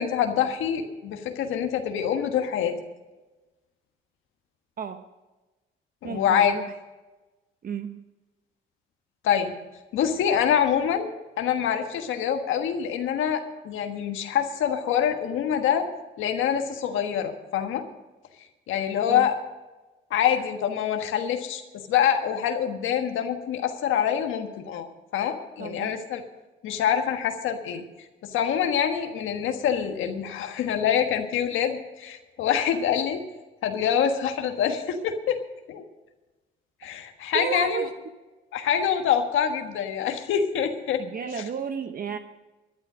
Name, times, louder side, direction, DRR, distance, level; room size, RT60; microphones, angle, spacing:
voice 1, 0.0-2.8 6.0-6.5 9.2-9.5 9.9-11.1 11.4-15.9 16.2-17.8 18.7-19.3 20.1-21.6 21.9-24.9 25.1-26.2 26.6-27.8 28.2-33.2 33.6-35.4 35.7-35.8 36.8-37.8 38.5-41.0, left 8 dB, 85° left, 5 dB, 1.4 m, -25 dB
voice 2, 4.8-5.1 6.0-6.7 7.6-8.1 19.1-19.3 25.6-25.9 37.3-37.9 41.0-42.2, right 6 dB, 45° right, 8 dB, 0.8 m, -32 dB
13.0 x 11.5 x 6.2 m, 1.1 s
cardioid pair, 90°, 20 cm